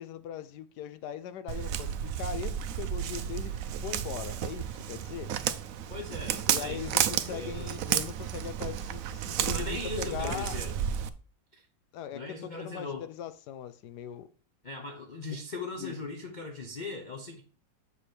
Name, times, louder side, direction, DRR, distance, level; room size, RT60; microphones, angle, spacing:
voice 1, 0.0-5.3 6.5-10.6 11.9-14.3 15.3-15.4 15.8-15.9, left 9 dB, 70° left, 1.1 m, -40 dB
Walk footsteps, 1.5-11.1, right 10 dB, 80° right, 0.7 m, -32 dB
voice 2, 5.9-6.8 7.3-7.7 9.5-10.8 11.5-11.6 12.1-13.1 14.6-17.4, left 3 dB, 50° left, 0.5 m, -39 dB
7.1 x 5.0 x 4.4 m
omnidirectional pair, 2.0 m